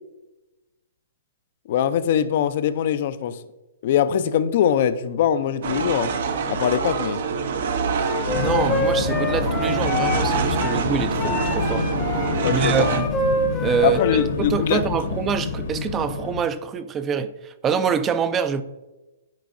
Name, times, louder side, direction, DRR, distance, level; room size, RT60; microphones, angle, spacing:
voice 1, 1.7-3.4 3.8-6.1 6.5-7.2 12.4-12.9 13.8-14.8, left 9 dB, 50° left, 0.5 m, -22 dB
sound 1, 5.6-13.0, right 5 dB, 60° right, 0.7 m, -26 dB
Wind instrument woodwind instrument, 8.0-10.8 11.2-14.3, left 2 dB, 15° left, 0.7 m, -27 dB
sound 2, 8.3-16.4, left 4 dB, 70° left, 1.3 m, -28 dB
voice 2, 8.3-12.2 12.5-13.2 13.6-18.6, right 7 dB, 20° right, 0.4 m, -25 dB
10.5 x 4.6 x 2.6 m
hypercardioid pair, 140°, 0 cm